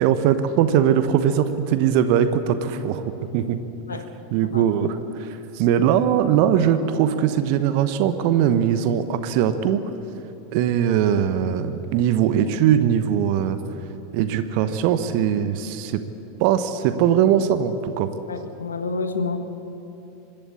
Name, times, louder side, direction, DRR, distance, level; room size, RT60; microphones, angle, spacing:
voice 1, 0.0-3.0 3.3-3.7 4.3-9.8 10.5-13.6 14.1-16.0 16.4-18.1, right 9 dB, 50° right, 11 dB, 1.0 m, -20 dB
voice 2, 18.3-19.5, left 4 dB, 75° left, 8 dB, 1.6 m, -28 dB
26.0 x 12.0 x 8.6 m, 2.9 s
figure-of-eight pair, 85°, 0 cm